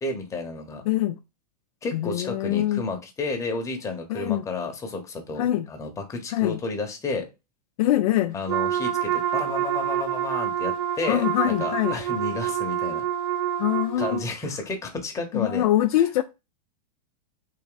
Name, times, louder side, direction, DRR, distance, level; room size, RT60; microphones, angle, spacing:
voice 1, 0.0-0.8 1.8-7.3 8.3-13.0 14.0-15.6 16.0-16.1, left 3 dB, 15° left, 0.9 m, -32 dB
voice 2, 0.9-1.2 1.9-2.8 4.1-4.4 5.4-5.7 6.3-6.6 7.8-8.3 11.1-12.0 13.6-14.3 15.3-16.2, left 13 dB, 60° left, 0.4 m, -23 dB
Wind instrument woodwind instrument, 8.5-14.3, right 10 dB, 55° right, 0.9 m, -27 dB
3.5 x 2.5 x 3.9 m
hypercardioid pair, 135°, 21 cm